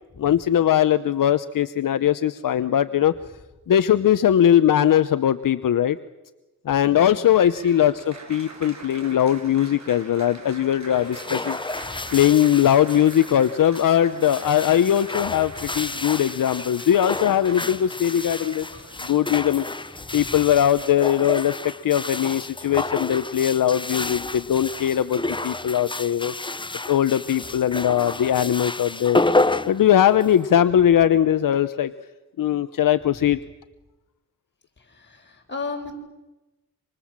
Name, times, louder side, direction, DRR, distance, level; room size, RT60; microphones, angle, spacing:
voice 1, 0.2-3.1 3.7-6.0 6.7-11.6 12.1-18.6 19.1-19.6 20.1-21.6 21.8-26.3 26.9-29.2 29.7-31.9 32.4-33.4, left 10 dB, 75° left, 11 dB, 0.9 m, -20 dB
voice 2, 6.8-7.3 11.8-12.1 18.7-18.8 20.0-20.4 34.8-35.9, left 4 dB, 35° left, 1 dB, 7.4 m, -36 dB
Applause, 7.2-21.8, right 3 dB, 55° right, 7.5 m, -44 dB
sound 1, 10.9-30.5, left 2 dB, 15° left, 0.8 m, -30 dB
27.5 x 26.5 x 7.5 m, 1.1 s
cardioid pair, 75°, 33 cm